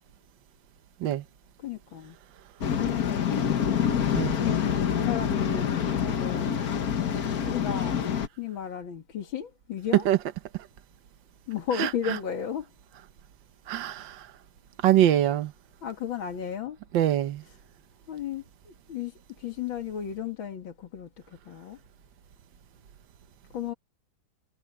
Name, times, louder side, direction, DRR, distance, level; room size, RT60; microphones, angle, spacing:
voice 1, 1.6-2.2 2.8-3.8 4.4-6.6 7.4-8.0 8.4-10.1 11.5-12.7 15.8-16.8 17.4-17.6 18.1-21.8 23.5-23.7, left 8 dB, 75° left, 2.5 m, -34 dB
Waves surf, 2.6-8.3, left 8 dB, 55° left, 1.5 m, -26 dB
voice 2, 13.7-14.1 14.8-15.5 16.9-17.4, right 11 dB, 70° right, 1.7 m, -23 dB
omnidirectional pair, 2.2 m